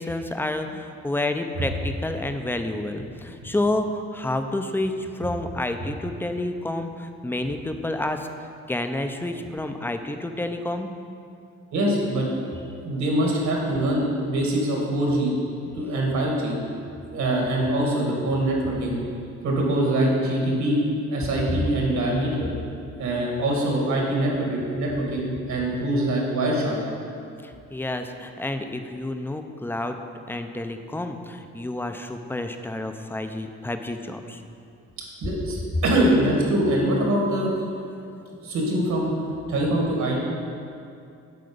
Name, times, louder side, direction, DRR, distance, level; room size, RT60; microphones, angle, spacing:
voice 1, 0.0-8.3 8.7-10.9 27.4-30.0 30.3-34.4 38.4-38.5, left 1 dB, 5° left, 7 dB, 0.4 m, -29 dB
voice 2, 11.7-12.5 12.8-15.3 15.8-16.6 17.1-19.0 19.4-20.8 21.1-22.5 23.0-26.8 35.2-37.5 38.4-39.1 39.5-40.2, right 1 dB, 70° right, -2 dB, 1.9 m, -23 dB
7.8 x 4.5 x 5.1 m, 2.5 s
cardioid pair, 90°, 30 cm